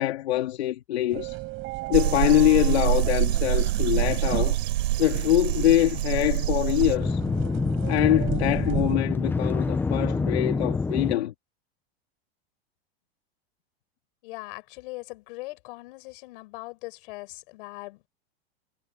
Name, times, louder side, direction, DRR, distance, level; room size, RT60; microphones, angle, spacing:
voice 1, 0.0-1.4 1.9-4.6 5.0-7.2 7.9-11.3, left 14 dB, 85° left, 2.8 m, -24 dB
sound 1, 1.1-9.0, right 21 dB, 40° right, 4.5 m, -35 dB
sound 2, 1.9-7.0, right 15 dB, 80° right, 4.3 m, -25 dB
sound 3, 6.2-11.2, left 4 dB, 5° left, 0.6 m, -27 dB
voice 2, 14.2-18.1, left 23 dB, 60° left, 5.6 m, -40 dB
supercardioid pair, 145°, 31 cm